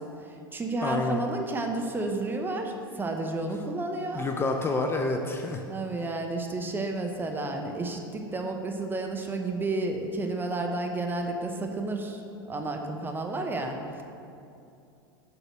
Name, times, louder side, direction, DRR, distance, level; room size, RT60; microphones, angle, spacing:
voice 1, 0.0-4.3 5.7-14.0, right 2 dB, 15° right, 3 dB, 0.8 m, -31 dB
voice 2, 0.8-1.2 4.1-5.6, left 3 dB, 20° left, 3 dB, 0.5 m, -28 dB
6.6 x 4.8 x 6.1 m, 2.6 s
hypercardioid pair, 90°, 12 cm